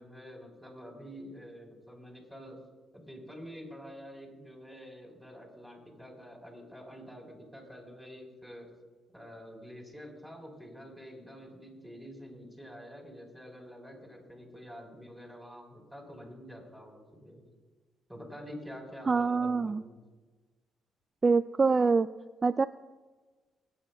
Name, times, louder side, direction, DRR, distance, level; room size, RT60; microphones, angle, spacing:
voice 1, 0.0-2.6 2.9-8.7 9.1-17.4 18.1-20.0, equal, ahead, 0 dB, 3.9 m, -47 dB
voice 2, 19.1-19.8 21.2-22.1 22.4-22.7, right 4 dB, 30° right, 11 dB, 0.3 m, -25 dB
25.0 x 9.7 x 2.3 m, 1.3 s
cardioid pair, 90°, 0 cm